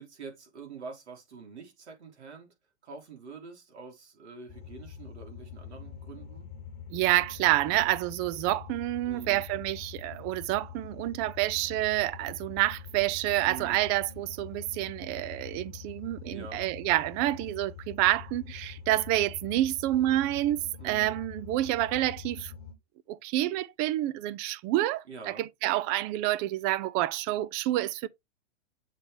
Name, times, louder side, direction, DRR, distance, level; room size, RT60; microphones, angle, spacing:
voice 1, 0.0-2.5 2.8-6.5 7.7-7.9 9.0-9.4 13.5-13.8 16.2-16.6 20.8-21.2 25.1-25.4, right 5 dB, 80° right, 3.3 m, -45 dB
sound 1, 4.5-22.7, left 7 dB, 30° left, 2.1 m, -45 dB
voice 2, 6.9-22.5 23.1-28.1, right 15 dB, 30° right, 0.4 m, -28 dB
7.3 x 3.8 x 3.4 m
hypercardioid pair, 125°, 34 cm